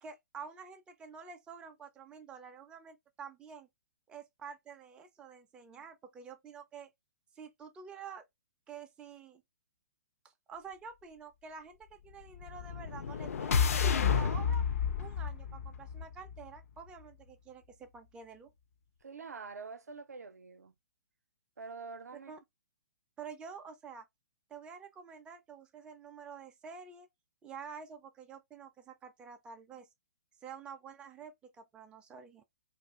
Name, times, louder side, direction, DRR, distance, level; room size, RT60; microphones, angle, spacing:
voice 1, 0.0-3.7 4.1-6.9 7.4-8.2 8.7-9.4 10.5-14.6 15.0-18.5 22.3-22.4 23.2-24.0 24.5-27.1 27.4-29.9 30.4-32.4, right 6 dB, 10° right, 0.3 m, -48 dB
sound 1, 12.3-16.6, left 6 dB, 60° left, 0.4 m, -31 dB
voice 2, 19.0-20.7 21.6-22.3, right 4 dB, 70° right, 0.5 m, -46 dB
2.4 x 2.3 x 3.1 m
figure-of-eight pair, 120°, 9 cm